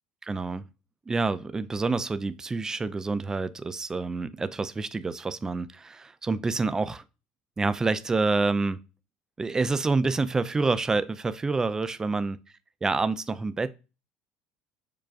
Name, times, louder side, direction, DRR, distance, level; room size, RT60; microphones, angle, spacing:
voice 1, 0.2-0.6 1.1-7.0 7.6-8.8 9.4-12.4 12.8-13.7, right 3 dB, 20° right, 0.4 m, -27 dB
6.6 x 2.3 x 2.4 m
supercardioid pair, 95°, 3 cm